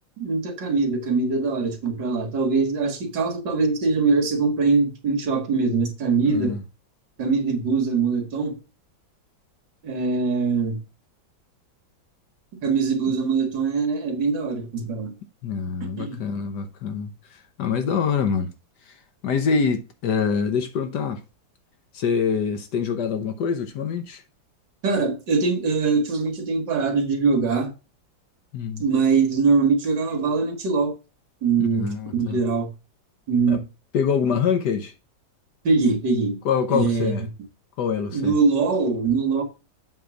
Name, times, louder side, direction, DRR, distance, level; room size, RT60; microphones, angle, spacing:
voice 1, 0.2-6.6 7.2-8.6 9.8-10.8 12.6-15.1 15.8-16.2 24.8-27.7 28.8-31.0 31.4-32.7 33.3-33.6 35.6-36.4 36.7-37.1 38.1-39.4, right 4 dB, 65° right, 2.2 m, -22 dB
voice 2, 6.2-6.6 15.4-17.1 17.6-18.5 19.2-21.2 21.9-24.2 28.5-28.8 31.7-32.4 33.5-33.6 33.9-34.9 36.4-37.2 37.8-38.3, left 6 dB, 65° left, 1.4 m, -25 dB
7.7 x 3.4 x 6.0 m
omnidirectional pair, 2.1 m